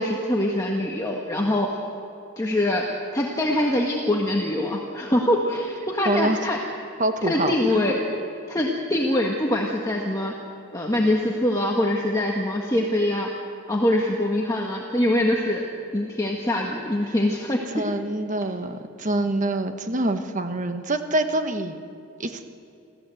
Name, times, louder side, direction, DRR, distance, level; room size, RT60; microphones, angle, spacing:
voice 1, 0.0-1.7 2.4-2.9 3.1-6.6 7.2-8.0 8.5-10.3 10.7-13.3 13.7-15.6 15.9-17.9, left 1 dB, 15° left, -1 dB, 1.4 m, -23 dB
voice 2, 6.0-6.4 7.0-7.6 17.7-21.8 22.2-22.4, right 1 dB, 35° right, 7 dB, 1.2 m, -25 dB
26.5 x 15.0 x 7.8 m, 2.6 s
head